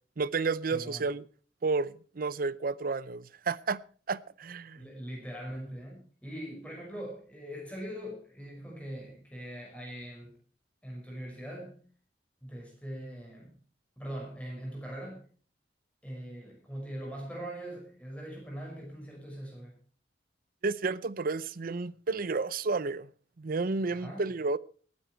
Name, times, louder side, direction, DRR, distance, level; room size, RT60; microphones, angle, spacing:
voice 1, 0.2-1.2 1.6-3.8 4.1-4.9 20.6-23.1 23.4-24.6, right 4 dB, 55° right, 0.6 m, -31 dB
voice 2, 0.7-1.1 4.8-10.3 10.8-11.8 12.4-13.6 14.0-15.2 16.0-19.8 23.9-24.2, equal, 10° left, 5.7 m, -41 dB
19.5 x 9.7 x 4.4 m
head